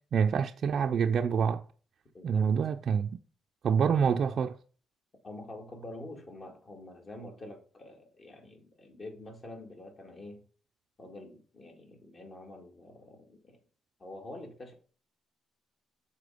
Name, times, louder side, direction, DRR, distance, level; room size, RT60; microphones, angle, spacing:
voice 1, 0.1-1.6 2.2-3.1 3.6-4.6, right 7 dB, 60° right, 0.4 m, -26 dB
voice 2, 2.1-2.5 5.2-10.5 11.0-13.6 14.0-14.7, left 2 dB, 40° left, 1.9 m, -46 dB
6.8 x 4.4 x 4.9 m
cardioid pair, 90°, 0 cm